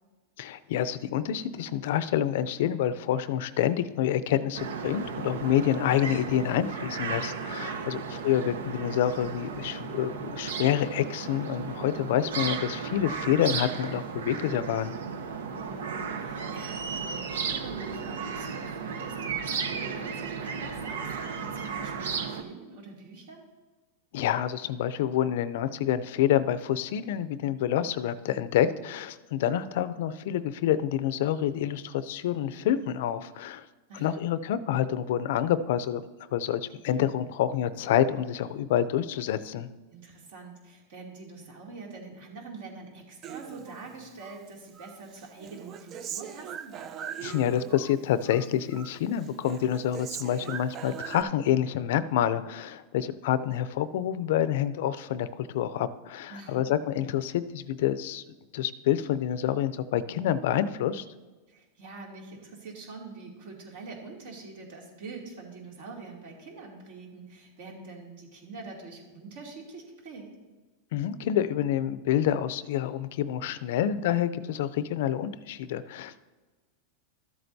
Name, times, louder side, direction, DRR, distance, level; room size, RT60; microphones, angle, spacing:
voice 1, 0.4-14.9 24.1-33.6 33.9-36.0 36.3-39.7 47.2-58.2 58.5-61.0 70.9-76.2, left 10 dB, 65° left, 14 dB, 0.5 m, -27 dB
sound 1, 4.5-22.4, right 5 dB, 90° right, 0.8 m, -34 dB
voice 2, 7.7-8.1 15.5-23.4 33.9-34.2 39.9-46.8 56.3-56.7 61.5-70.3, right 3 dB, 65° right, 0 dB, 2.7 m, -45 dB
Human voice, 43.2-44.4 44.8-48.0 48.2-49.0 49.2-51.2, right 8 dB, 30° right, 0.4 m, -40 dB
13.0 x 7.8 x 2.7 m, 1.2 s
supercardioid pair, 140°, 0 cm